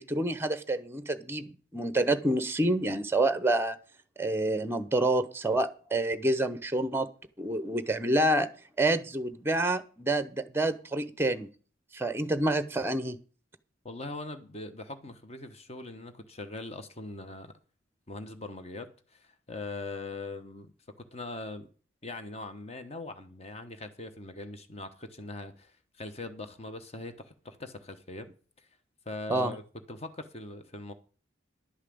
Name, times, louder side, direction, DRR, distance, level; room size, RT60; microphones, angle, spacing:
voice 1, 0.0-3.8 4.2-7.1 7.4-8.5 8.8-11.5 11.9-13.2 29.3-29.5, right 1 dB, 10° right, 0.8 m, -28 dB
voice 2, 13.8-17.5 18.1-20.7 21.1-21.7 22.0-28.3 29.0-29.6 29.9-30.9, left 2 dB, 30° left, 1.0 m, -41 dB
11.5 x 5.7 x 8.5 m
head